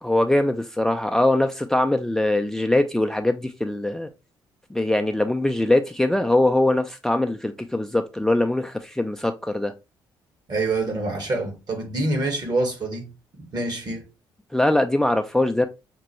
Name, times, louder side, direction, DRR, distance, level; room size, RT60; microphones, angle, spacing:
voice 1, 0.0-4.1 4.7-9.7 14.5-15.7, left 1 dB, 5° left, 0.4 m, -22 dB
voice 2, 10.5-13.1 13.5-14.1, right 2 dB, 45° right, 1.6 m, -26 dB
5.9 x 2.2 x 3.0 m
hypercardioid pair, 55°, 10 cm